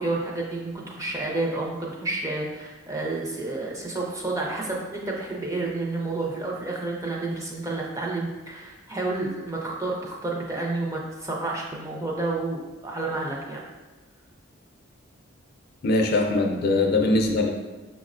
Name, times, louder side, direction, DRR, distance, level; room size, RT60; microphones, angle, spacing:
voice 1, 0.0-13.7, right 2 dB, 15° right, -2 dB, 0.4 m, -30 dB
voice 2, 15.8-17.5, left 2 dB, 50° left, 2 dB, 0.4 m, -21 dB
5.7 x 2.1 x 2.4 m, 1.2 s
head